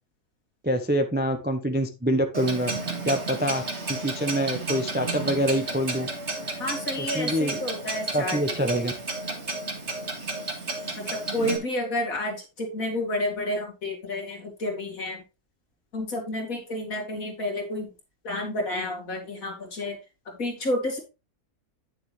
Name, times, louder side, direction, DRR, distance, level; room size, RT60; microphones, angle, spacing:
voice 1, 0.6-2.8 3.0-3.6 3.9-6.1 7.0-7.6 8.1-8.9, equal, 10° right, 6 dB, 0.6 m, -25 dB
Clock, 2.3-11.6, right 2 dB, 45° right, 2.3 m, -32 dB
voice 2, 6.6-8.4 11.0-15.2 15.9-17.9 18.2-20.0 20.3-21.0, left 1 dB, 60° left, 1 dB, 2.8 m, -30 dB
9.4 x 6.8 x 3.3 m, 0.28 s
omnidirectional pair, 1.6 m